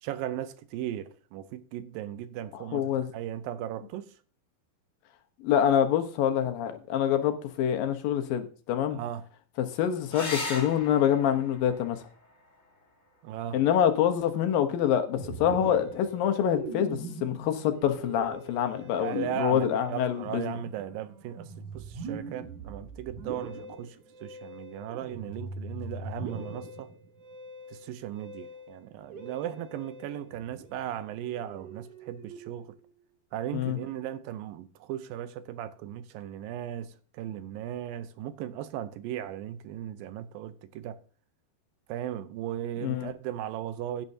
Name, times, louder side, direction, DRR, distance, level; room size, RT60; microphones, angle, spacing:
voice 1, 0.0-4.1 8.9-9.3 13.2-13.6 18.8-24.0 24.2-26.9 27.7-32.8 33.3-41.0 41.9-44.1, right 11 dB, 80° right, 2.4 m, -37 dB
voice 2, 2.5-3.1 5.4-9.0 9.6-12.0 13.5-20.6 33.5-33.8 42.8-43.1, left 9 dB, 80° left, 2.7 m, -26 dB
sound 1, 10.1-15.1 17.0-17.7 21.1-21.2 21.5-21.6, left 2 dB, 15° left, 4.5 m, -41 dB
Musical instrument, 15.2-32.8, right 2 dB, 60° right, 2.8 m, -42 dB
16.0 x 9.0 x 2.8 m
omnidirectional pair, 4.1 m